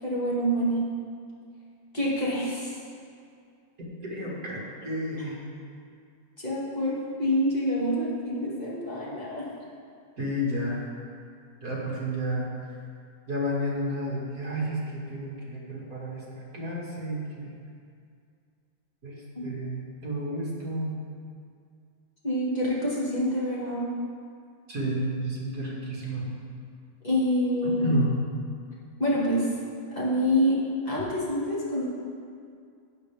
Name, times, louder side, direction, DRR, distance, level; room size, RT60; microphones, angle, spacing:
voice 1, 0.0-0.8 1.9-2.7 6.4-9.5 19.4-19.5 22.2-23.8 27.0-27.9 29.0-29.5 29.9-30.6 30.9-31.8, equal, 25° left, -7 dB, 2.2 m, -26 dB
voice 2, 4.0-5.4 10.2-10.8 11.6-12.5 13.3-16.3 16.5-17.5 19.0-20.9 24.7-26.3 27.8-28.2, right 1 dB, 55° right, -5 dB, 2.6 m, -31 dB
12.5 x 8.4 x 3.5 m, 2.3 s
omnidirectional pair, 1.9 m